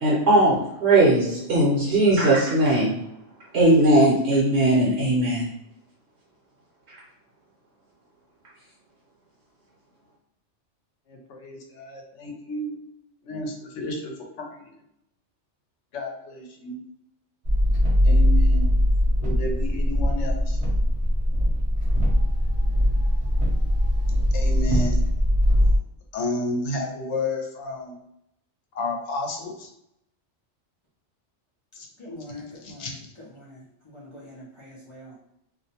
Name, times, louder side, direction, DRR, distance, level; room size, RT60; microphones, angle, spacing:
voice 1, 0.0-2.9 3.5-5.4, right 1 dB, 70° right, -5 dB, 0.9 m, -19 dB
voice 2, 11.1-12.8 13.2-14.6 15.9-16.8 18.0-18.7 19.2-20.6 24.3-25.0 26.1-27.9 28.7-29.7 31.8-31.9 32.6-33.0, left 1 dB, 80° left, 2 dB, 0.9 m, -31 dB
sound 1, 17.4-25.8, equal, 40° right, 0.6 m, -21 dB
voice 3, 32.0-35.1, left 1 dB, 50° left, -5 dB, 0.3 m, -44 dB
2.4 x 2.0 x 2.7 m, 0.80 s
omnidirectional pair, 1.2 m